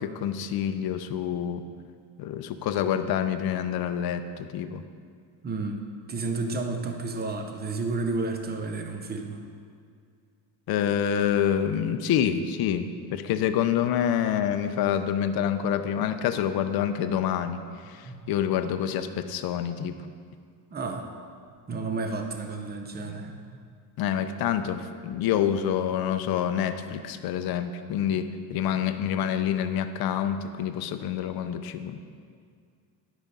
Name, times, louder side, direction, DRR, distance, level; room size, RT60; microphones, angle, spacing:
voice 1, 0.0-1.6 2.2-4.8 10.7-19.9 24.0-32.0, left 9 dB, 55° left, 8 dB, 0.6 m, -27 dB
voice 2, 5.4-5.8 6.1-9.4 18.0-18.2 20.7-21.1 21.7-23.4, right 3 dB, 20° right, 4 dB, 0.6 m, -31 dB
11.5 x 5.0 x 5.3 m, 2.2 s
cardioid pair, 155°, 45 cm